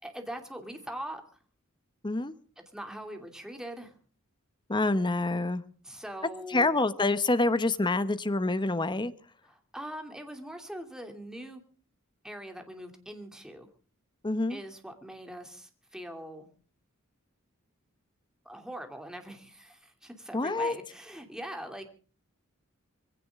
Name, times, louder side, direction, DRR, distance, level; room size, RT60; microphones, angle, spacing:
voice 1, 0.0-1.2 2.6-4.0 5.8-6.8 9.4-11.6 12.2-13.7 14.5-16.5 18.4-21.9, right 1 dB, 5° right, 5 dB, 2.7 m, -42 dB
voice 2, 4.7-5.6 6.5-9.1 14.2-14.6 20.3-20.7, left 2 dB, 20° left, 13 dB, 0.9 m, -27 dB
22.5 x 16.5 x 3.6 m, 0.40 s
head